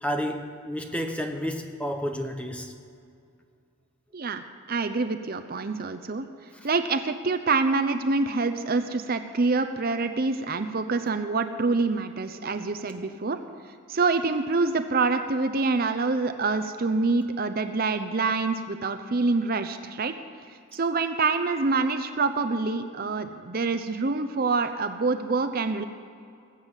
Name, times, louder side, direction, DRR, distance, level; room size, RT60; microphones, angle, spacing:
voice 1, 0.0-2.8 6.5-6.7 12.4-12.5, equal, 5° left, 4 dB, 0.9 m, -31 dB
voice 2, 4.7-6.3 6.6-13.4 13.9-20.1 20.7-25.8, right 3 dB, 40° right, 9 dB, 0.6 m, -26 dB
19.5 x 7.3 x 8.2 m, 2.4 s
head